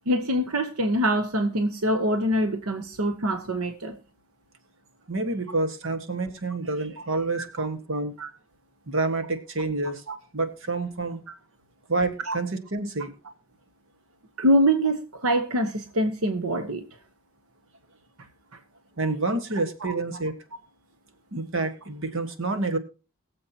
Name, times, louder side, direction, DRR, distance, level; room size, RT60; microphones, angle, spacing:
voice 1, 0.1-4.0 7.4-7.7 8.2-8.3 10.1-10.2 12.3-12.4 14.4-16.9 19.8-19.9, equal, 85° right, 8 dB, 1.1 m, -24 dB
voice 2, 5.1-8.2 8.9-10.0 10.3-11.2 11.9-13.1 19.0-20.4 21.3-22.8, right 3 dB, 60° right, 8 dB, 1.5 m, -28 dB
22.0 x 7.5 x 2.9 m, 0.32 s
head